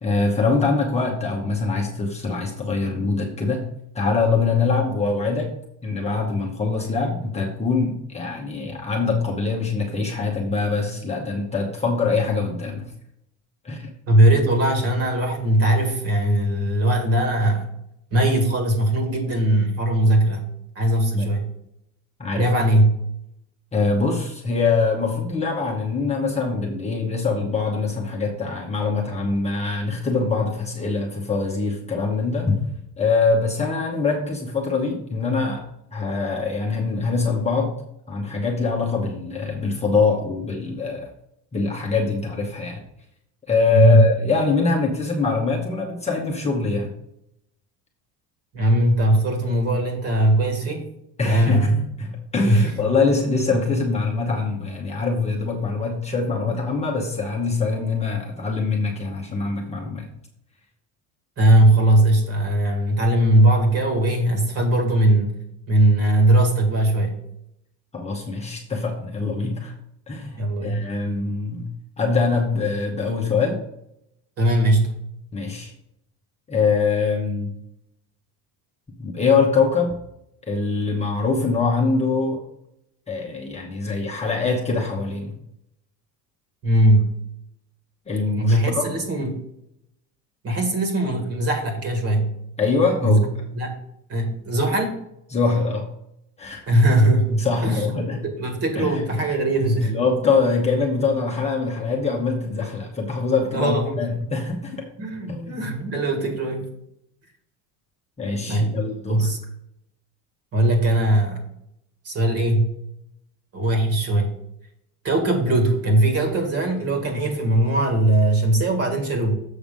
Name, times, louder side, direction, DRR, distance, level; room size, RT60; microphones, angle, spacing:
voice 1, 0.0-3.6 3.9-5.5 5.8-12.8 13.6-13.9 21.1-21.3 22.2-22.5 23.7-32.6 33.0-35.6 35.9-37.7 38.1-41.1 41.5-42.8 43.5-47.0 51.2-60.1 67.9-69.7 70.1-71.7 72.0-73.6 75.3-75.7 76.5-77.5 79.0-79.9 80.5-82.4 83.1-85.3 88.1-88.8 92.6-93.3 95.3-95.8 96.4-96.6 97.4-98.2 98.8-99.0 99.8-104.8 105.3-105.6 108.2-109.3, left 4 dB, 15° left, -1 dB, 1.0 m, -23 dB
voice 2, 14.1-17.7 18.1-20.5 20.8-21.5 22.3-23.0 43.7-44.1 48.5-50.9 51.2-51.8 52.4-52.7 61.4-65.4 65.7-67.2 70.4-70.9 74.4-74.9 86.6-87.2 88.3-89.4 90.4-92.4 93.0-93.2 93.5-93.7 94.1-94.9 96.7-97.9 98.2-100.0 103.5-103.9 105.0-106.7 108.4-108.8 109.1-109.4 110.5-111.4 112.0-112.8 113.5-114.3 115.0-119.3, right 1 dB, 35° right, 4 dB, 1.9 m, -19 dB
7.4 x 5.8 x 5.2 m, 0.78 s
cardioid pair, 160°, 41 cm